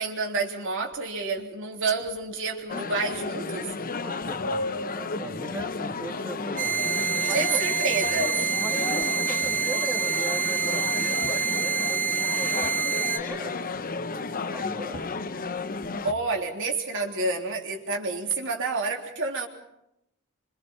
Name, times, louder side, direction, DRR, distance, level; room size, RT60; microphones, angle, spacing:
voice 1, 0.0-3.7 7.3-8.4 16.0-19.5, right 3 dB, 60° right, 1 dB, 3.4 m, -29 dB
sound 1, 0.9-1.0 1.4-1.5 1.8-2.7 3.1-3.7 4.1-5.2 5.5-6.0 6.3-9.2 9.4-16.3, left 1 dB, 55° left, 1.5 m, -42 dB
sound 2, 2.7-16.1, left 4 dB, 40° left, 0.9 m, -33 dB
voice 2, 4.0-7.6 8.5-15.2, right 1 dB, 10° right, 0 dB, 2.7 m, -39 dB
sound 3, 6.6-13.2, right 7 dB, 40° right, 1.7 m, -27 dB
30.0 x 25.0 x 4.5 m, 0.82 s
head